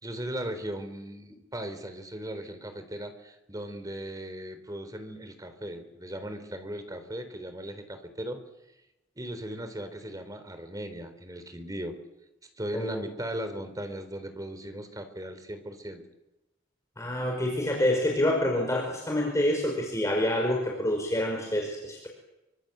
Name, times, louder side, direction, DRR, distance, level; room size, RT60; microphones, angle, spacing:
voice 1, 0.0-8.4 9.2-11.9 12.6-16.0, right 1 dB, 20° right, 8 dB, 3.9 m, -38 dB
voice 2, 17.0-22.1, left 1 dB, 15° left, 0 dB, 5.2 m, -27 dB
27.5 x 25.5 x 8.1 m, 0.97 s
head